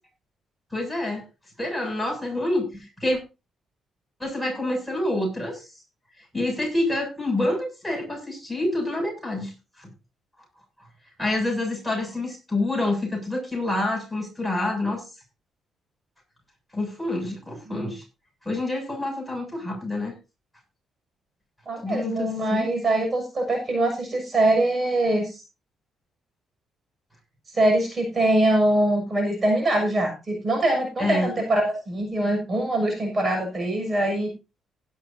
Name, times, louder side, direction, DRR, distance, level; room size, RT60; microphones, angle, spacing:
voice 1, 0.7-1.2 1.6-2.6 3.0-3.2 4.2-5.7 6.3-9.5 9.8-9.9 11.2-15.0 16.7-18.0 18.5-20.1 21.8-22.7 31.0-31.3, left 1 dB, 5° left, 1 dB, 7.3 m, -27 dB
voice 2, 21.6-25.4 27.5-31.6 31.9-34.3, right 1 dB, 35° right, 3 dB, 6.7 m, -23 dB
17.0 x 11.5 x 2.8 m, 0.28 s
cardioid pair, 90°, 0 cm